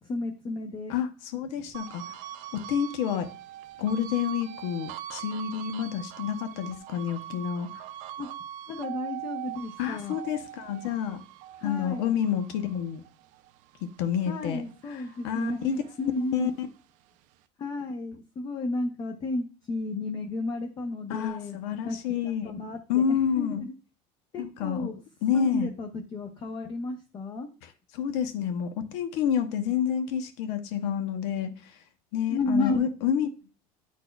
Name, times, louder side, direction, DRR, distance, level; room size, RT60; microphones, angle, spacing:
voice 1, 0.0-0.9 8.2-8.3 8.7-10.1 11.6-12.1 14.3-16.5 17.6-21.6 21.8-22.0 22.4-23.7 24.3-25.0 25.3-27.5 32.3-32.9, left 2 dB, 30° left, 0.7 m, -32 dB
voice 2, 0.9-2.1 2.7-3.3 3.8-7.8 9.8-11.2 11.6-13.0 14.0-14.6 14.9-15.8 16.2-16.7 21.1-22.5 22.9-23.6 24.4-24.9 25.2-25.7 27.6-31.8 32.1-33.3, left 8 dB, 80° left, 0.8 m, -29 dB
sound 1, 1.7-14.4 14.8-16.5, right 12 dB, 60° right, 0.5 m, -42 dB
10.0 x 4.2 x 2.3 m
cardioid pair, 160°, 15 cm